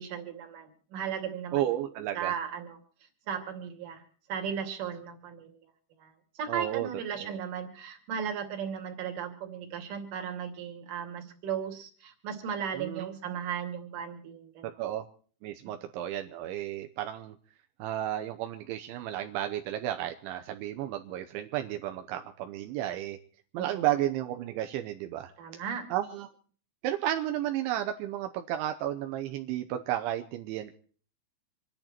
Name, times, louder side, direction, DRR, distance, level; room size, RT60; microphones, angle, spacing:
voice 1, 0.0-1.6 2.1-2.8 3.3-4.0 4.3-5.5 6.0-14.7 23.6-23.9 25.4-25.9, right 7 dB, 50° right, 4 dB, 3.7 m, -36 dB
voice 2, 1.5-2.3 6.5-6.9 7.2-7.3 12.8-13.1 14.8-15.1 15.4-17.3 17.8-23.2 23.5-25.3 25.9-26.3 26.8-30.7, right 12 dB, 80° right, 6 dB, 3.2 m, -32 dB
27.0 x 10.5 x 4.4 m, 0.43 s
omnidirectional pair, 5.4 m